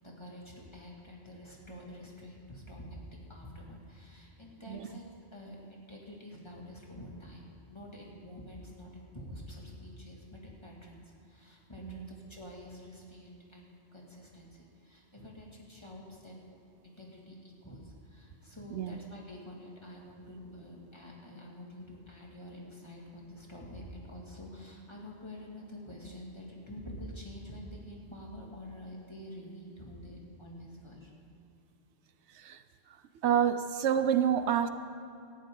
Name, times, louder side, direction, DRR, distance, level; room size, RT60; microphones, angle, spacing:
voice 1, 0.0-16.5 16.8-31.1, left 1 dB, 25° left, -3 dB, 2.3 m, -47 dB
voice 2, 32.3-32.6 33.2-34.7, right 9 dB, 75° right, 10 dB, 0.9 m, -28 dB
19.0 x 13.5 x 3.8 m, 2.6 s
omnidirectional pair, 1.2 m